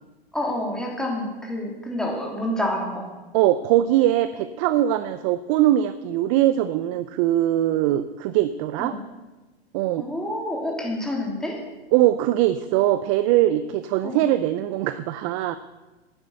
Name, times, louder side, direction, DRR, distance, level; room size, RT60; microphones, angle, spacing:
voice 1, 0.3-3.1 8.8-9.0 10.0-11.6 14.0-14.2, left 1 dB, ahead, -2 dB, 3.0 m, -28 dB
voice 2, 3.3-9.0 9.7-10.1 11.9-15.6, right 13 dB, 30° right, 13 dB, 0.5 m, -21 dB
11.0 x 9.3 x 7.9 m, 1.2 s
hypercardioid pair, 125°, 32 cm